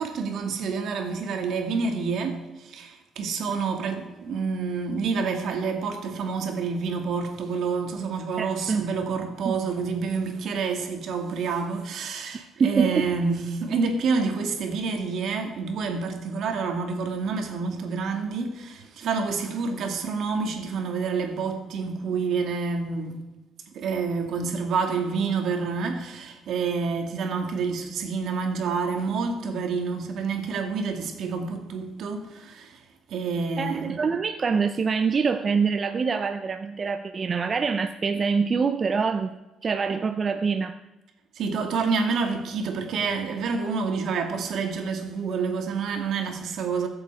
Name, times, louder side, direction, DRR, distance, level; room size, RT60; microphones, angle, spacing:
voice 1, 0.0-23.1 23.7-34.0 41.3-46.9, right 5 dB, 70° right, 2.3 m, -28 dB
voice 2, 8.4-8.9 9.4-9.6 12.2-13.0 33.6-39.4 39.6-40.7, right 5 dB, 35° right, 0.6 m, -25 dB
22.5 x 7.9 x 4.9 m
cardioid pair, 130°, 0 cm